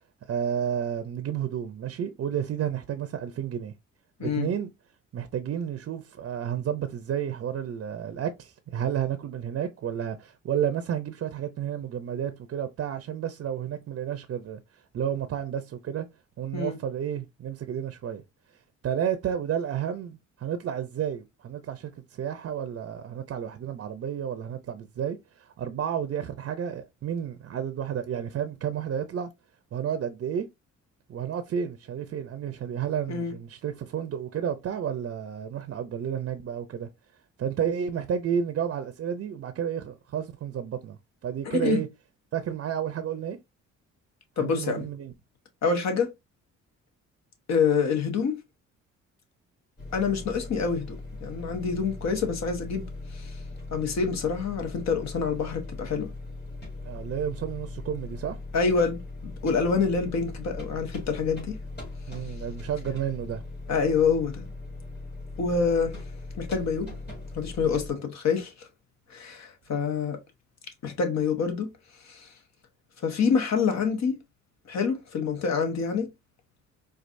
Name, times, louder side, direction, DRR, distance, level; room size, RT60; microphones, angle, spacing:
voice 1, 0.2-3.7 4.2-4.7 5.1-16.1 16.4-18.2 18.8-29.3 29.7-30.5 31.1-36.9 37.4-41.9 42.3-43.4 44.4-45.1 56.8-58.4 62.1-63.4, right 8 dB, 50° right, 0.5 m, -31 dB
voice 2, 41.4-41.8 44.4-44.8 45.6-46.1 47.5-48.4 49.9-52.8 53.2-53.3 53.7-56.1 58.5-61.6 63.7-64.5 65.4-66.0 66.4-66.9 67.3-68.7 69.1-70.2 70.8-71.7 72.1-72.3 73.0-74.2 74.7-76.1, left 5 dB, 60° left, 1.1 m, -26 dB
sound 1, 49.8-67.9, left 2 dB, 35° left, 2.3 m, -39 dB
4.5 x 2.4 x 2.5 m
cardioid pair, 90°, 30 cm